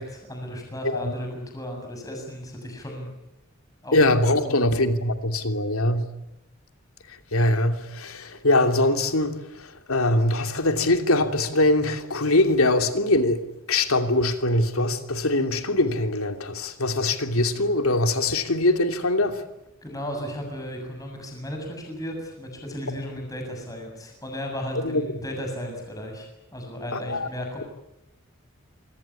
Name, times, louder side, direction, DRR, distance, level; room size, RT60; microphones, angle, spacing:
voice 1, 0.0-3.1 3.8-4.0 4.4-4.6 19.8-27.6, equal, 15° left, 7.2 m, -35 dB
voice 2, 3.9-6.1 7.3-13.4 13.7-19.4 24.8-25.0 26.9-27.3, left 2 dB, 85° left, 2.8 m, -22 dB
27.5 x 21.0 x 8.6 m
head